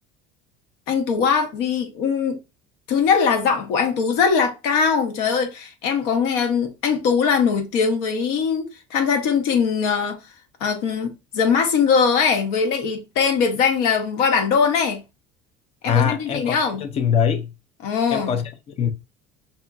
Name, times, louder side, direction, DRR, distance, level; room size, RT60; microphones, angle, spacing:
voice 1, 0.9-2.4 2.9-10.2 10.6-15.0 15.8-16.8 17.8-18.4, left 6 dB, 75° left, 1.3 m, -21 dB
voice 2, 15.9-17.5 18.1-18.5 18.8-18.9, left 8 dB, 30° left, 0.6 m, -22 dB
5.4 x 2.7 x 2.3 m
cardioid pair, 170°, 19 cm